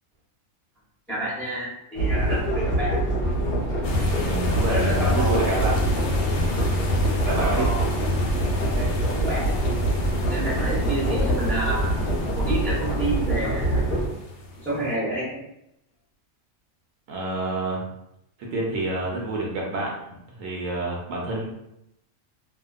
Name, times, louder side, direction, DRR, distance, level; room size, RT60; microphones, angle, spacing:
voice 1, 1.1-3.0 4.4-5.6 7.1-7.9 8.7-9.5 10.3-11.9 12.3-13.8 14.6-15.4, right 1 dB, ahead, -8 dB, 0.6 m, -29 dB
sound 1, 1.9-14.1, right 1 dB, 50° left, 0.9 m, -25 dB
sound 2, 3.8-14.9, left 2 dB, 90° left, 1.0 m, -30 dB
voice 2, 4.1-5.9 7.3-7.7 17.1-17.8 18.5-21.4, right 2 dB, 70° right, -3 dB, 1.0 m, -28 dB
2.6 x 2.1 x 2.3 m, 0.81 s
omnidirectional pair, 1.5 m